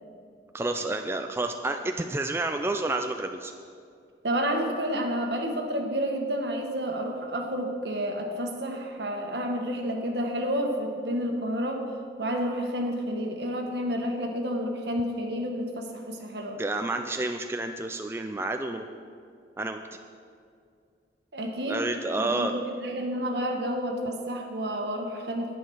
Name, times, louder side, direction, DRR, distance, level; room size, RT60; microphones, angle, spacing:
voice 1, 0.5-3.5 16.6-18.9 19.6-19.8 21.7-22.5, right 2 dB, 15° right, 5 dB, 0.4 m, -29 dB
voice 2, 4.2-11.8 12.2-16.6 21.3-21.8 22.1-22.5 22.8-25.6, equal, 65° right, 2 dB, 1.6 m, -30 dB
10.5 x 9.7 x 6.3 m, 2.3 s
head